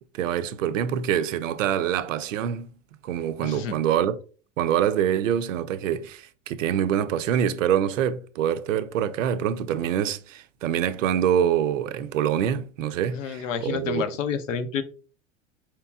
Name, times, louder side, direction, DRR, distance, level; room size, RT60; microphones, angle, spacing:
voice 1, 0.1-2.7 3.0-4.2 4.6-14.0, right 9 dB, 75° right, 0.5 m, -25 dB
voice 2, 3.4-3.8 13.1-14.8, left 6 dB, 70° left, 0.7 m, -29 dB
4.6 x 2.9 x 2.3 m
figure-of-eight pair, 80°, 39 cm